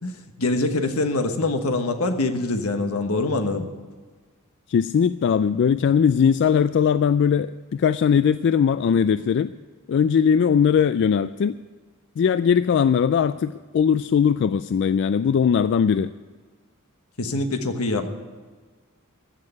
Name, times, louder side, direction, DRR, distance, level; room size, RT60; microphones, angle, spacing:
voice 1, 0.0-3.7 17.2-18.1, left 2 dB, 80° left, 6 dB, 1.3 m, -24 dB
voice 2, 4.7-9.5 9.9-11.6 12.2-16.1, left 7 dB, 55° left, 13 dB, 0.3 m, -20 dB
15.0 x 6.6 x 9.7 m, 1.5 s
head